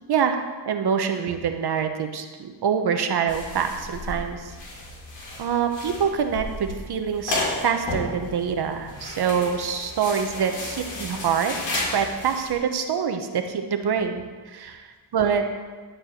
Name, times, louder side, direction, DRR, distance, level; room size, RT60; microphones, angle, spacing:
voice 1, 0.1-0.4 0.7-4.5 5.4-14.9 15.1-15.5, right 7 dB, 60° right, 6 dB, 1.1 m, -25 dB
sound 1, 3.3-12.5, left 2 dB, 85° left, 3.2 m, -33 dB
12.5 x 4.8 x 7.7 m, 1.4 s
cardioid pair, 105°, 44 cm